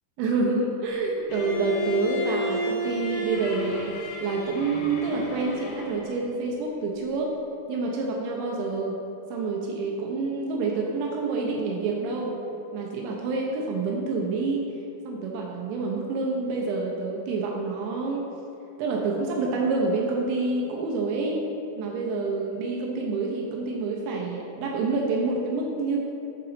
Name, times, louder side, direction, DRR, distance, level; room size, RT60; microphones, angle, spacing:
voice 1, 0.2-7.3 7.7-9.0 9.3-12.4 12.7-14.7 15.1-18.3 18.8-21.4 21.8-26.0, right 3 dB, 80° right, -1 dB, 2.8 m, -27 dB
Bowed string instrument, 1.3-6.2, left 1 dB, 85° left, 2.2 m, -33 dB
7.4 x 3.9 x 4.1 m, 2.8 s
omnidirectional pair, 5.5 m